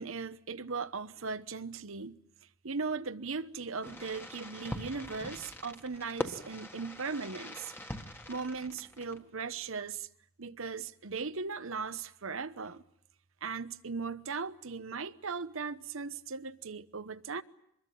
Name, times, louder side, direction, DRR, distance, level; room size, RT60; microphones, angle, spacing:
voice 1, 0.0-2.2 2.6-7.7 8.3-10.1 10.4-12.8 13.4-17.4, right 4 dB, 65° right, 1.0 m, -38 dB
Fireworks, 3.8-9.4, left 1 dB, 10° left, 1.7 m, -43 dB
25.0 x 21.5 x 9.3 m
head